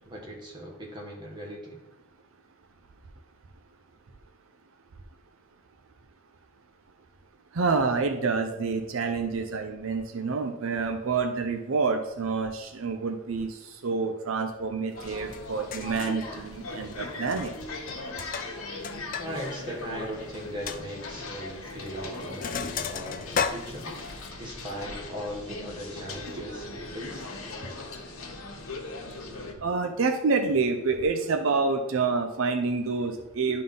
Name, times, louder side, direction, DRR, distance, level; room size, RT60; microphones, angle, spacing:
voice 1, 0.0-1.8 19.2-27.3, equal, 20° right, -2 dB, 1.4 m, -39 dB
voice 2, 7.5-17.5 29.6-33.6, right 4 dB, 75° right, 5 dB, 0.6 m, -28 dB
sound 1, 14.9-29.5, left 2 dB, 90° left, 1.2 m, -39 dB
Sink (filling or washing), 15.3-15.4 15.7-16.2 17.2-17.6 17.9-19.3 19.6-19.7 20.1-20.2 20.7-20.8 21.7-21.9 22.1-24.3, left 6 dB, 40° left, 0.3 m, -33 dB
11.0 x 3.8 x 3.8 m, 0.96 s
head